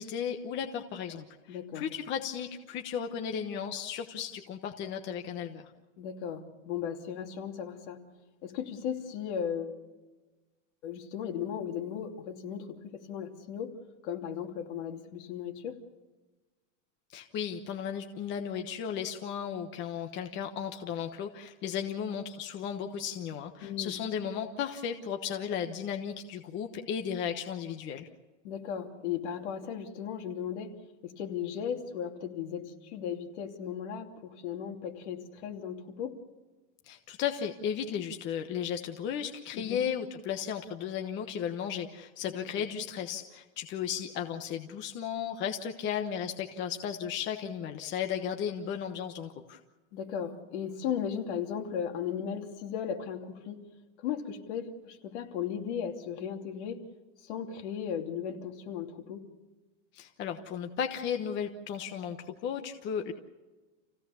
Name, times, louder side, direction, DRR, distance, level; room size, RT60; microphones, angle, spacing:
voice 1, 0.0-5.7 17.1-28.1 36.8-49.6 59.9-63.1, left 8 dB, 30° left, 5 dB, 1.2 m, -35 dB
voice 2, 1.5-1.9 6.0-8.0 8.4-9.8 10.8-13.7 14.0-15.8 23.6-23.9 28.4-30.8 31.0-36.2 39.5-39.8 42.3-42.7 49.9-53.6 54.0-56.8 57.2-59.2, left 8 dB, 60° left, 3 dB, 2.9 m, -36 dB
28.5 x 16.5 x 7.1 m, 1.2 s
supercardioid pair, 160°, 38 cm